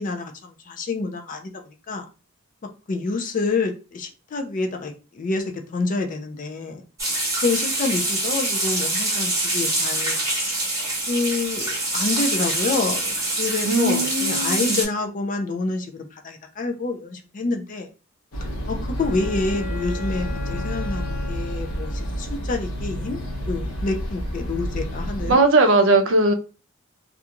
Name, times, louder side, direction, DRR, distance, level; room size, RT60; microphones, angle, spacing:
voice 1, 0.0-2.0 2.9-6.8 7.4-10.6 11.1-17.9 18.7-25.4, left 3 dB, 40° left, 0.4 m, -28 dB
sound 1, 7.0-14.9, right 2 dB, 15° right, 1.0 m, -25 dB
voice 2, 13.6-14.8 25.3-26.3, right 2 dB, 65° right, 0.5 m, -18 dB
sound 2, 18.3-25.3, equal, 90° left, 0.8 m, -29 dB
Bowed string instrument, 18.9-22.4, left 5 dB, 65° left, 1.1 m, -39 dB
2.4 x 2.3 x 2.8 m
head